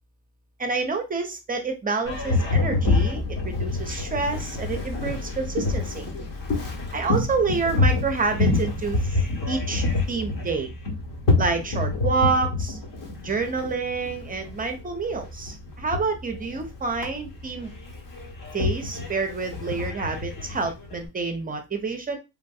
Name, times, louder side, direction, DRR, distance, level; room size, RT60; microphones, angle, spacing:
voice 1, 0.6-6.1 6.9-9.2 9.5-10.7 11.4-12.8 13.2-17.7 18.5-22.2, right 4 dB, 20° right, 5 dB, 0.5 m, -28 dB
Boat Water vehicle, 2.0-21.1, left 3 dB, 50° left, 1.2 m, -27 dB
3.4 x 2.5 x 2.3 m, 0.25 s
supercardioid pair, 100°, 41 cm